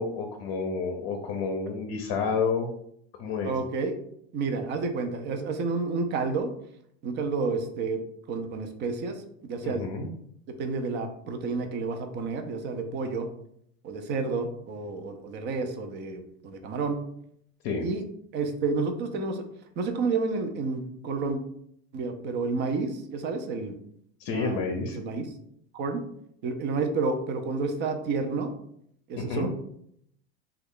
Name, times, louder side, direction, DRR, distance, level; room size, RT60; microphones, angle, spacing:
voice 1, 0.0-2.7 3.2-3.5 9.6-10.1 17.6-17.9 24.2-25.0 29.2-29.5, left 4 dB, 50° left, 3 dB, 0.6 m, -29 dB
voice 2, 3.4-3.9 4.3-6.5 7.0-8.0 8.3-9.2 9.5-9.9 10.5-13.3 13.8-17.0 17.8-18.0 18.3-19.4 19.8-21.4 21.9-23.7 24.3-24.6 24.9-25.3 25.7-26.0 26.4-28.5 29.1-29.5, right 4 dB, 35° right, 6 dB, 0.5 m, -30 dB
3.0 x 2.3 x 3.6 m, 0.70 s
supercardioid pair, 130°, 31 cm